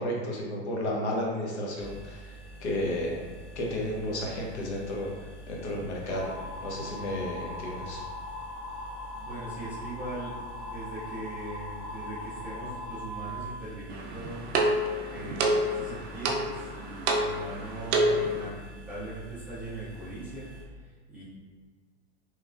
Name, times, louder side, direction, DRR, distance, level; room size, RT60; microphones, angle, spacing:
voice 1, 0.0-2.3 2.6-3.1 3.6-5.1 5.5-8.0, left 1 dB, 90° left, -2 dB, 0.9 m, -32 dB
sound 1, 1.8-20.6, equal, 35° left, 0.7 m, -47 dB
sound 2, 6.1-13.4, left 1 dB, 70° left, 1.3 m, -40 dB
voice 2, 9.2-10.3 10.6-14.5 15.1-21.2, right 2 dB, 5° right, -11 dB, 0.3 m, -40 dB
sound 3, 13.9-18.5, right 1 dB, 70° right, 0.5 m, -28 dB
3.0 x 2.3 x 2.4 m, 1.5 s
supercardioid pair, 150°, 33 cm